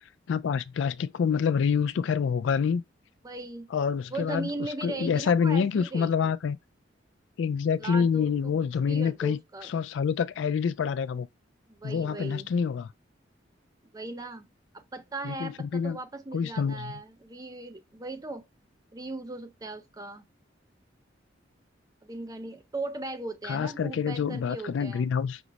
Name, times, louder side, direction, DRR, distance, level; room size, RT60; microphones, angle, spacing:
voice 1, 0.3-2.8 3.7-4.5 4.8-6.6 7.4-9.4 9.7-11.3 11.8-12.9 15.2-16.0 16.3-16.9 23.5-25.4, left 6 dB, 75° left, 0.3 m, -27 dB
voice 2, 3.2-3.7 4.1-6.3 7.8-8.5 8.8-9.7 11.7-12.5 13.9-14.5 14.7-18.5 18.9-20.2 22.0-25.0, right 2 dB, 20° right, 0.5 m, -38 dB
6.1 x 2.1 x 3.9 m
head